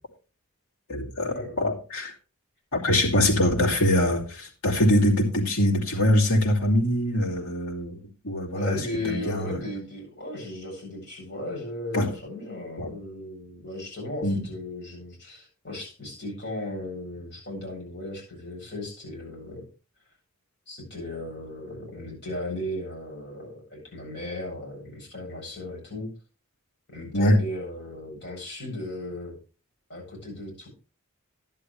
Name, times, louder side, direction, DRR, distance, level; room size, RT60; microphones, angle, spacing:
voice 1, 0.9-2.1 2.7-8.0 8.2-9.6 11.9-12.1 12.8-12.9 14.2-14.4 27.1-27.4, left 1 dB, 90° left, 2.8 m, -23 dB
voice 2, 8.5-19.6 20.7-26.1 26.9-29.3 29.9-30.7, left 1 dB, 50° left, 7.8 m, -36 dB
11.5 x 11.0 x 3.3 m
head